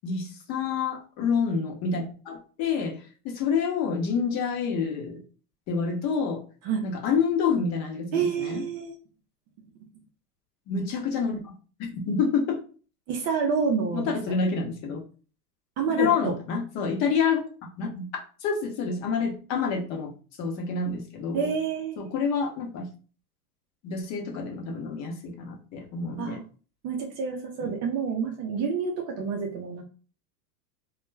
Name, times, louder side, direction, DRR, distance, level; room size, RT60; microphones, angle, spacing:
voice 1, 0.0-3.0 3.2-5.2 5.7-6.4 6.8-8.6 10.7-11.4 11.9-12.6 13.9-15.0 16.0-17.4 17.8-18.1 18.4-20.1 20.4-21.5 22.0-22.9 23.8-26.4 27.6-27.7, left 5 dB, 35° left, 2 dB, 0.8 m, -28 dB
voice 2, 8.1-8.9 13.1-14.4 15.8-16.3 21.3-22.1 26.2-26.4 26.8-29.8, right 6 dB, 35° right, 2 dB, 0.6 m, -28 dB
2.3 x 2.1 x 3.1 m, 0.38 s
hypercardioid pair, 115°, 47 cm